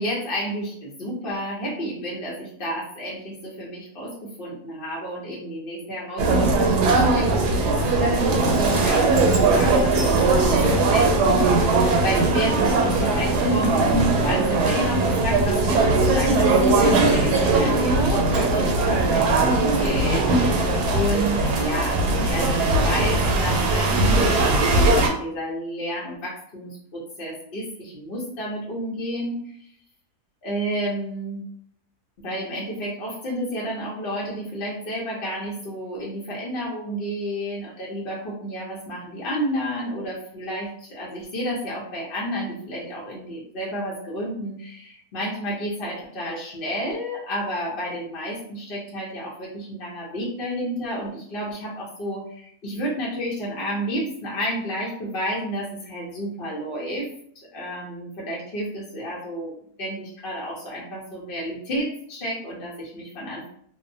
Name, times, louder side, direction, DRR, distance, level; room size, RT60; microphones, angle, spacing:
voice 1, 0.0-29.4 30.4-31.5 32.2-57.1 57.5-59.5 59.8-63.5, equal, 55° left, -5 dB, 0.6 m, -31 dB
sound 1, 6.2-25.1, right 2 dB, 90° right, 1.2 m, -20 dB
2.8 x 2.0 x 2.6 m, 0.64 s
omnidirectional pair, 1.7 m